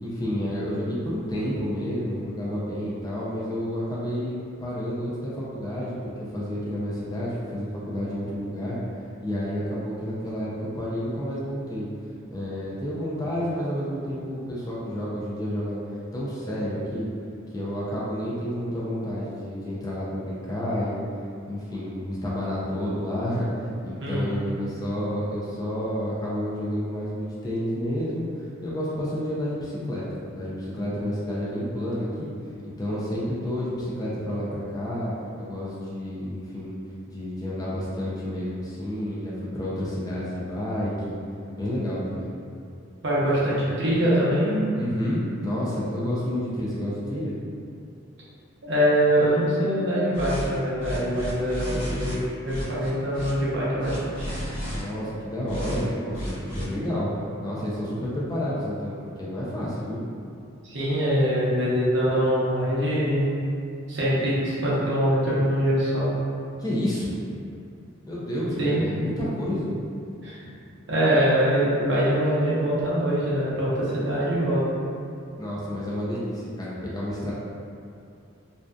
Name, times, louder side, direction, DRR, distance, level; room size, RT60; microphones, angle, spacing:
voice 1, 0.0-8.8 9.2-10.5 10.8-11.9 12.3-15.8 16.1-17.1 17.5-21.0 21.5-32.3 32.8-35.1 35.4-36.7 37.1-41.2 41.5-42.3 44.7-47.4 54.7-60.0 66.6-67.1 68.1-69.8 75.4-77.3, equal, 20° left, -7 dB, 0.3 m, -30 dB
voice 2, 24.0-24.4 43.0-44.6 48.6-54.3 60.7-63.3 63.9-66.0 68.6-68.8 70.2-70.5 70.9-74.6, equal, 60° right, -8 dB, 0.7 m, -23 dB
sound 1, 50.1-50.5 50.8-52.1 52.4-53.3 53.8-54.8 55.4-55.8 56.1-56.6, equal, 75° left, 1.0 m, -32 dB
2.5 x 2.2 x 2.2 m, 2.5 s
head